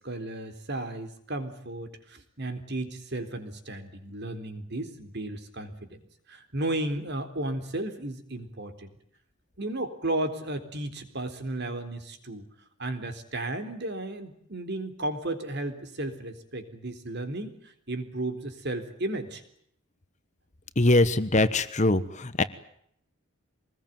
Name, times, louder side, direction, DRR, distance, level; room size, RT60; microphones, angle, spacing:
voice 1, 0.0-6.0 6.3-8.9 9.6-12.5 12.8-19.4, right 1 dB, 55° right, 8 dB, 3.9 m, -34 dB
voice 2, 20.8-22.4, left 2 dB, 35° left, 13 dB, 1.3 m, -22 dB
24.5 x 20.5 x 9.2 m, 0.70 s
head